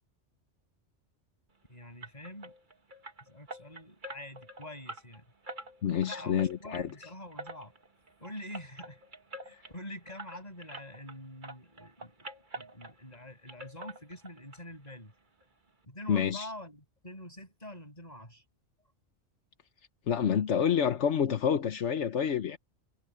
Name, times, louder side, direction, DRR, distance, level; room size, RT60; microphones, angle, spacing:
voice 1, 1.7-2.5 3.2-5.3 6.0-7.7 8.2-9.0 9.4-15.1 15.9-18.4, left 1 dB, 35° left, 8.2 m, -46 dB
sound 1, 2.0-11.2 11.4-13.2 13.5-14.6 14.8-15.0 15.4-15.5 15.8-15.9, right 2 dB, 45° right, 1.9 m, -46 dB
voice 2, 5.8-6.9 16.1-16.5 20.1-22.6, left 8 dB, 80° left, 1.3 m, -28 dB
omnidirectional pair, 1.2 m